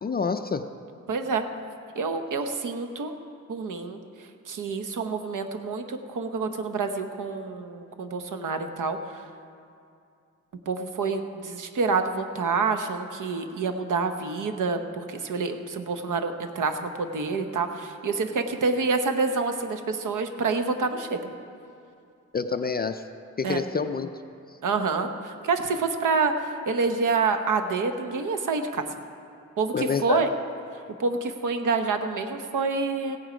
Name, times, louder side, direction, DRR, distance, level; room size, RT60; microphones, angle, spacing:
voice 1, 0.0-0.7 22.3-23.1 23.4-24.2 24.5-24.6 29.7-30.2, left 5 dB, 30° left, 8 dB, 0.4 m, -27 dB
voice 2, 1.1-1.4 1.9-3.2 3.5-9.3 10.7-21.3 23.4-23.6 24.6-28.8 29.6-30.3 31.0-33.2, right 4 dB, 90° right, 7 dB, 1.0 m, -27 dB
16.0 x 9.7 x 5.1 m, 2.5 s
wide cardioid pair, 135°, 30 cm